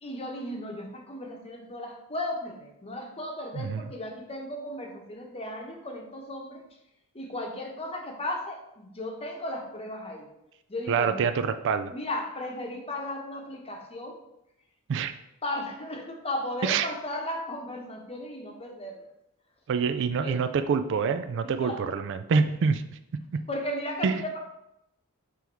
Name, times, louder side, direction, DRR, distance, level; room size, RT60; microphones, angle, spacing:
voice 1, 0.0-6.6 7.1-10.3 10.7-11.3 11.9-14.2 15.4-19.0 20.2-20.4 21.6-21.8 23.5-24.4, left 1 dB, 25° left, 2 dB, 0.9 m, -35 dB
voice 2, 3.5-3.9 10.9-11.9 14.9-15.1 16.6-16.9 19.7-22.8 23.3-23.4 24.0-24.1, right 5 dB, 55° right, 11 dB, 0.3 m, -26 dB
6.0 x 3.5 x 4.6 m, 0.83 s
head